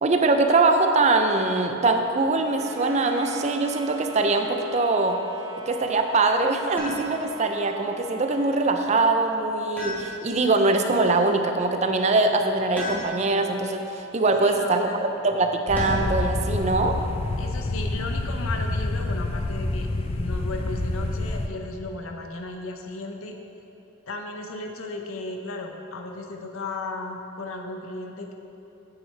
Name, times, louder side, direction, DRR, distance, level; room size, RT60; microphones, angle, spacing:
voice 1, 0.0-5.2 5.7-14.8 15.2-16.9, right 3 dB, 35° right, 5 dB, 0.4 m, -22 dB
sound 1, 2.6-8.8, right 2 dB, 90° right, 1.2 m, -41 dB
sound 2, 6.8-7.4 9.8-10.6 12.8-13.5 15.8-16.3 18.0-18.6, left 1 dB, 10° left, 1.4 m, -35 dB
voice 2, 14.4-15.1 17.4-19.9 20.1-23.3 24.1-28.3, left 2 dB, 85° left, 4 dB, 0.8 m, -35 dB
sound 3, 15.7-21.5, left 2 dB, 30° left, 0.3 m, -28 dB
8.8 x 8.0 x 3.3 m, 2.9 s
head